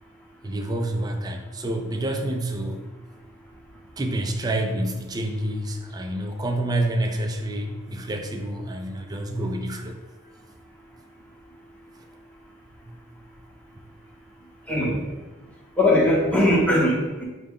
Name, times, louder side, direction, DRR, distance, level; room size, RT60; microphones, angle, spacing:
voice 1, 0.4-2.8 4.0-9.9, right 1 dB, 20° right, 4 dB, 0.4 m, -28 dB
voice 2, 14.7-15.1 15.8-17.2, left 1 dB, 5° left, -5 dB, 0.9 m, -20 dB
4.9 x 2.2 x 3.5 m, 1.2 s
head